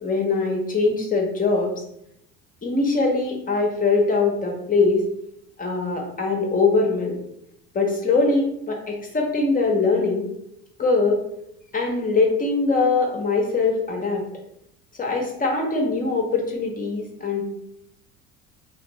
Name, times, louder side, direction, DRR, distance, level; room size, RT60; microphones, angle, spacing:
voice 1, 0.0-1.7 2.6-5.0 5.6-7.2 7.7-10.3 10.8-11.2 11.7-14.2 15.0-17.5, left 3 dB, 20° left, 1 dB, 0.6 m, -22 dB
3.0 x 2.5 x 3.0 m, 0.79 s
hypercardioid pair, 65°, 41 cm